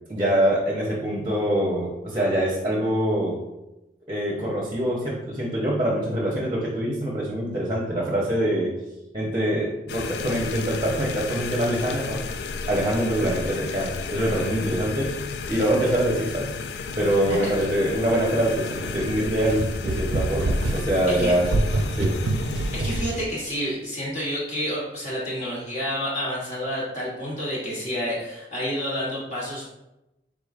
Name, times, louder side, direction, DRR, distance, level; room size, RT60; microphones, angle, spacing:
voice 1, 0.1-3.4 4.1-8.7 9.1-12.2 12.7-15.2 15.5-16.5 17.0-21.5 21.9-22.2, right 1 dB, 25° right, -3 dB, 0.7 m, -24 dB
sound 1, 9.9-23.2, left 4 dB, 65° left, 0.3 m, -33 dB
voice 2, 17.3-17.7 21.1-21.3 22.7-29.7, equal, 40° left, -6 dB, 1.2 m, -29 dB
sound 2, 18.8-23.2, right 2 dB, 80° right, 0.4 m, -27 dB
4.9 x 3.6 x 2.4 m, 0.93 s
head